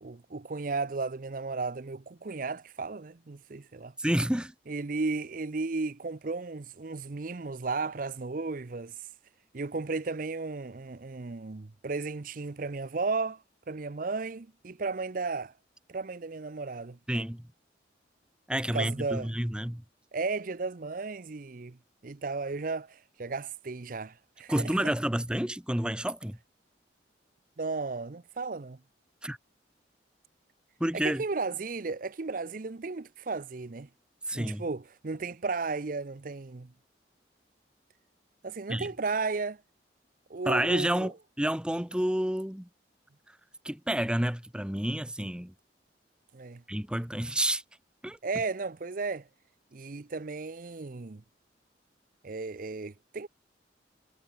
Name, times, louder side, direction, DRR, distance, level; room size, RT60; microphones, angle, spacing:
voice 1, 0.0-3.9 4.7-8.9 9.5-13.4 13.7-15.5 15.9-17.0 18.7-19.3 20.1-21.8 22.0-24.9 27.6-28.8 30.9-33.9 34.3-36.7 38.4-39.6 40.3-41.1 46.3-46.6 48.2-49.3 49.7-51.2 52.2-53.3, right 4 dB, 50° right, 0.6 m, -34 dB
voice 2, 4.0-4.5 17.1-17.4 18.5-19.8 24.5-26.4 29.2-29.4 30.8-31.2 34.3-34.6 38.7-38.9 40.5-41.1 41.4-42.7 43.6-45.5 46.7-47.6 48.0-48.2, right 1 dB, 5° right, 0.9 m, -29 dB
head